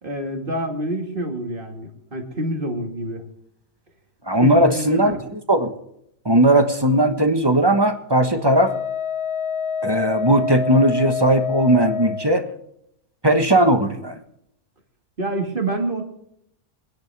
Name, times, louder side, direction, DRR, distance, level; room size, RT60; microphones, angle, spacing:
voice 1, 0.0-3.2 4.4-5.2 15.2-16.0, right 1 dB, 45° right, 3 dB, 2.2 m, -27 dB
voice 2, 4.3-5.1 5.5-5.7 6.2-8.7 9.8-12.4 13.2-14.2, right 1 dB, 20° right, 6 dB, 1.2 m, -17 dB
Wind instrument woodwind instrument, 8.6-12.3, left 6 dB, 60° left, 0.8 m, -26 dB
23.0 x 10.5 x 3.5 m, 0.76 s
omnidirectional pair, 1.3 m